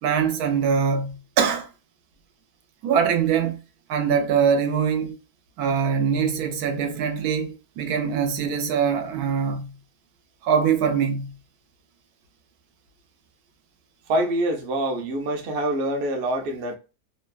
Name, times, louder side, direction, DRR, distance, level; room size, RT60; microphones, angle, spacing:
voice 1, 0.0-1.7 2.8-3.6 3.9-5.2 5.6-9.7 10.4-11.3, right 7 dB, 85° right, 1.1 m, -23 dB
voice 2, 14.1-16.8, right 1 dB, 55° right, 0.7 m, -25 dB
2.8 x 2.2 x 2.3 m
omnidirectional pair, 1.6 m